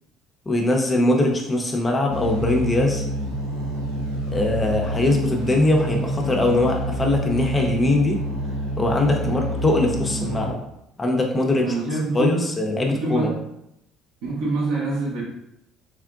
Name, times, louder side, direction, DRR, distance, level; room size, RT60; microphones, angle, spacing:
voice 1, 0.5-3.0 4.3-8.2 8.8-10.6 11.0-11.7 12.1-13.3, left 2 dB, 25° left, 1 dB, 0.8 m, -21 dB
sound 1, 2.1-10.5, right 1 dB, 90° right, 0.6 m, -28 dB
voice 2, 9.2-9.5 11.6-12.5 12.9-13.5 14.2-15.2, right 2 dB, 70° right, -5 dB, 1.2 m, -26 dB
3.6 x 3.4 x 2.4 m, 0.81 s
hypercardioid pair, 55°, 0 cm